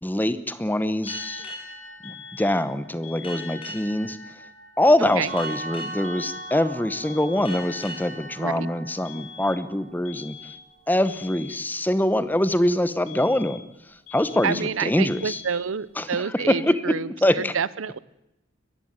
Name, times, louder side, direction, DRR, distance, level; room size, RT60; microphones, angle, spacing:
voice 1, 0.0-1.5 2.0-4.2 4.8-10.5 10.9-13.6 13.9-15.4 16.0-17.5, left 1 dB, 10° left, 14 dB, 0.8 m, -24 dB
sound 1, 1.0-1.7 2.0-2.7 3.0-3.7 5.0-5.7 6.0-6.7 7.0-7.7 9.1-9.7 10.1-10.7 11.1-11.7 13.1-13.7 14.1-14.7 15.1-15.7, left 9 dB, 80° left, 2.1 m, -44 dB
sound 2, 1.1-10.2, left 1 dB, 25° left, 7.7 m, -41 dB
sound 3, 5.3-11.1, right 3 dB, 50° right, 5.5 m, -41 dB
voice 2, 8.4-8.7 14.4-17.1 17.3-18.0, right 6 dB, 75° right, 20 dB, 0.7 m, -28 dB
21.0 x 15.0 x 9.5 m, 0.90 s
head